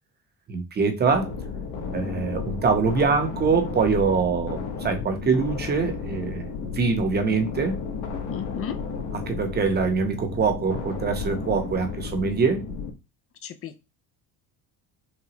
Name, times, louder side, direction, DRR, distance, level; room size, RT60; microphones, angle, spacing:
voice 1, 0.5-1.3 1.9-6.4 6.7-7.8 9.1-12.6, right 5 dB, 25° right, 0.8 m, -24 dB
sound 1, 1.0-12.9, left 5 dB, 85° left, 1.4 m, -33 dB
voice 2, 8.3-8.8 13.4-13.8, left 8 dB, 40° left, 0.4 m, -34 dB
5.9 x 2.2 x 2.9 m
cardioid pair, 150°, 36 cm